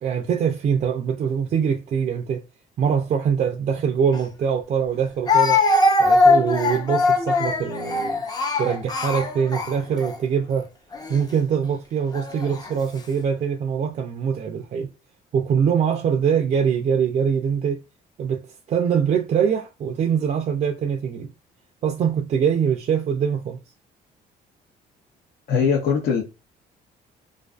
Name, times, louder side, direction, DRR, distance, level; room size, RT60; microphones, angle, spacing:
voice 1, 0.0-2.5 2.8-5.6 6.0-8.2 8.6-10.7 11.1-14.9 15.3-17.8 18.2-21.3 21.8-23.6, right 7 dB, 45° right, 0.4 m, -23 dB
Speech, 4.1-4.2 5.3-10.2 10.9-11.2 12.1-12.7, left 3 dB, 25° left, 0.5 m, -21 dB
voice 2, 25.5-26.2, left 6 dB, 65° left, 0.6 m, -20 dB
2.4 x 2.4 x 2.3 m
cardioid pair, 110°, 17 cm